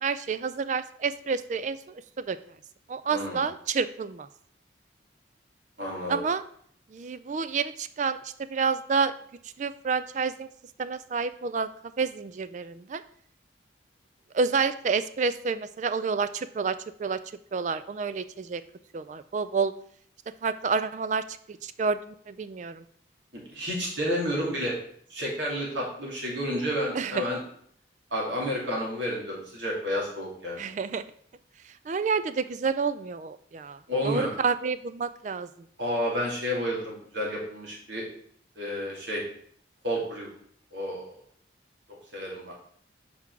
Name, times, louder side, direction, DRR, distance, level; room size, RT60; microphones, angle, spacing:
voice 1, 0.0-2.4 2.9-4.3 6.1-6.4 6.9-9.1 9.6-10.5 10.8-11.7 12.0-13.0 14.3-17.2 17.5-18.6 18.9-19.7 20.4-22.8 26.9-27.2 30.6-31.0 31.9-35.5, right 5 dB, 40° right, 13 dB, 0.3 m, -29 dB
voice 2, 3.1-3.5 5.8-6.2 23.3-24.8 25.1-27.4 28.1-30.6 33.9-34.3 35.8-38.0 38.6-39.2 39.8-40.3 40.7-41.1 42.1-42.5, equal, 75° right, -3 dB, 2.7 m, -30 dB
5.8 x 4.8 x 6.0 m, 0.62 s
head